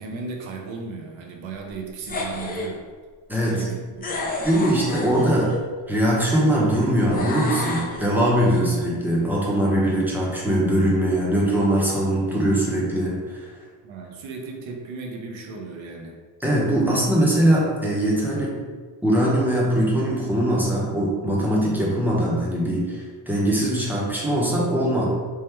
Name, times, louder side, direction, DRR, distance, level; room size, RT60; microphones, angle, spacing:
voice 1, 0.0-2.8 3.4-4.5 4.7-5.0 13.8-16.2, right 4 dB, 85° right, 1 dB, 0.7 m, -36 dB
sound 1, 2.0-2.7 4.0-5.6 7.1-8.6, left 2 dB, 20° left, 0.4 m, -30 dB
voice 2, 3.3-3.6 4.4-5.5 5.9-13.5 16.4-18.6 19.0-25.1, right 1 dB, 5° right, -5 dB, 0.7 m, -21 dB
3.5 x 2.1 x 4.3 m, 1.6 s
cardioid pair, 150°, 45 cm